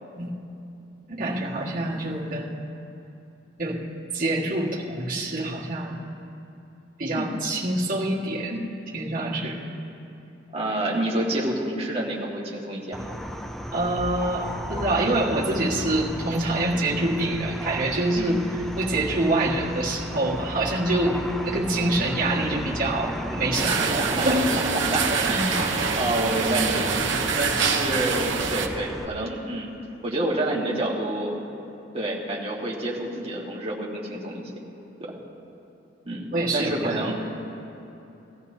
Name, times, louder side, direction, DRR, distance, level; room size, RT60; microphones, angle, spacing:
voice 1, 1.1-2.6 3.6-3.8 4.1-6.0 7.0-8.6 8.9-9.7 13.7-23.7 24.2-24.5 25.1-25.3 27.3-27.4 36.3-37.1, right 1 dB, 50° right, -6 dB, 1.7 m, -26 dB
voice 2, 10.5-13.1 16.7-16.9 18.2-18.4 23.7-25.0 25.3-29.7 30.0-31.4 31.9-34.5 35.0-35.1 36.0-37.1, right 1 dB, 30° right, -3 dB, 1.7 m, -28 dB
sound 1, 12.9-29.0, equal, ahead, 0.4 m, -35 dB
sound 2, 23.5-28.7, right 5 dB, 80° right, 0.8 m, -25 dB
19.0 x 14.5 x 2.8 m, 2.9 s
head